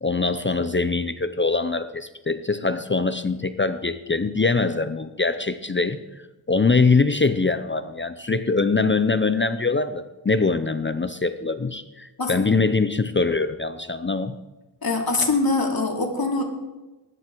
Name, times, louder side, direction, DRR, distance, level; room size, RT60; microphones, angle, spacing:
voice 1, 0.0-14.4, left 4 dB, 25° left, 11 dB, 0.6 m, -23 dB
voice 2, 14.8-16.4, left 3 dB, 55° left, 2 dB, 2.7 m, -23 dB
19.5 x 11.0 x 4.6 m, 1.1 s
wide cardioid pair, 105°, 45 cm